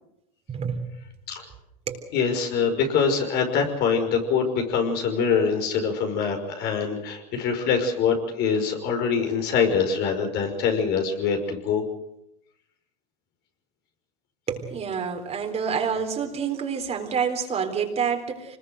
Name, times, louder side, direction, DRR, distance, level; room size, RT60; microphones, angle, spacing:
voice 1, 0.5-0.9 1.9-2.0 14.5-18.6, right 6 dB, 30° right, 4 dB, 3.9 m, -28 dB
voice 2, 2.1-11.8, left 6 dB, 55° left, 4 dB, 5.6 m, -24 dB
25.5 x 20.5 x 6.5 m, 0.83 s
supercardioid pair, 110°, 20 cm